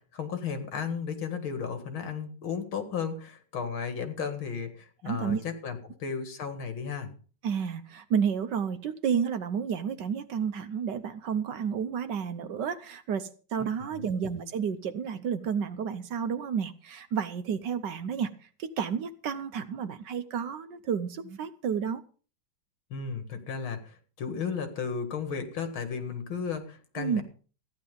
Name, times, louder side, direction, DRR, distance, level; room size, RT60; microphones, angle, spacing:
voice 1, 0.1-7.1 13.6-14.1 22.9-27.2, left 6 dB, 75° left, 2.6 m, -34 dB
voice 2, 5.0-5.4 7.4-18.3 18.6-22.0 27.0-27.2, right 7 dB, 65° right, 1.4 m, -31 dB
14.5 x 10.5 x 5.3 m
omnidirectional pair, 2.2 m